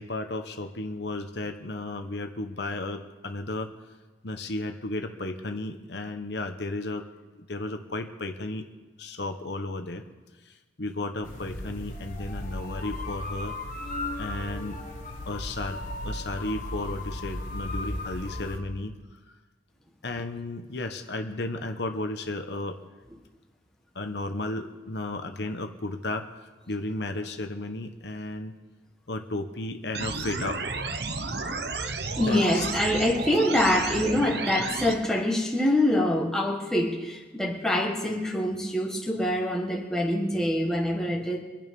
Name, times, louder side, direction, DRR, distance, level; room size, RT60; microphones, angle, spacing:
voice 1, 0.0-3.7 4.2-7.0 7.5-8.6 9.0-10.0 10.4-13.5 14.2-14.8 15.3-18.9 20.0-22.8 23.9-28.5 29.1-30.6 32.1-32.6, left 2 dB, 65° left, 6 dB, 1.1 m, -34 dB
sound 1, 11.2-18.6, left 1 dB, 45° left, 1.7 m, -35 dB
sound 2, 29.9-34.9, right 3 dB, 60° right, 1.0 m, -32 dB
voice 2, 32.1-41.4, left 1 dB, 5° left, 0 dB, 1.6 m, -25 dB
24.0 x 8.9 x 5.4 m, 1.2 s
head